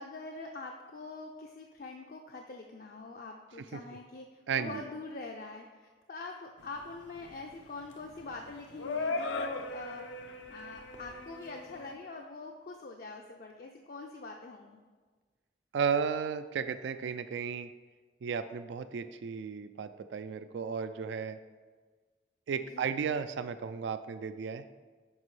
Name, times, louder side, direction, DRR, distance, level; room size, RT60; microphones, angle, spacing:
voice 1, 0.0-10.2 10.5-14.8 22.7-22.9, left 3 dB, 50° left, 2 dB, 0.5 m, -44 dB
voice 2, 4.5-4.8 15.7-17.7 18.2-21.4 22.5-24.6, right 6 dB, 75° right, 11 dB, 0.3 m, -34 dB
sound 1, 6.6-11.9, left 3 dB, 85° left, 0.7 m, -38 dB
9.1 x 6.0 x 3.2 m, 1.4 s
head